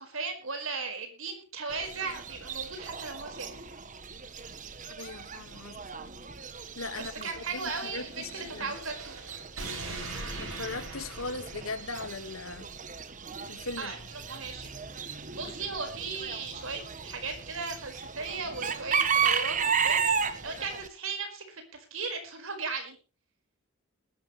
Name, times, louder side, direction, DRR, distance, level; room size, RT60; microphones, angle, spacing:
voice 1, 0.0-3.6 7.0-9.2 13.8-14.7 15.0-21.6 21.9-23.0, right 4 dB, 75° right, 4.9 m, -37 dB
Chicken rooster / Bird, 1.7-20.9, right 6 dB, 40° right, 1.3 m, -35 dB
voice 2, 4.9-5.8 6.7-8.7 10.4-12.7 13.5-13.9, left 3 dB, 80° left, 1.7 m, -39 dB
sound 1, 7.6-12.4, right 2 dB, 90° right, 6.5 m, -42 dB
21.0 x 12.5 x 3.2 m
head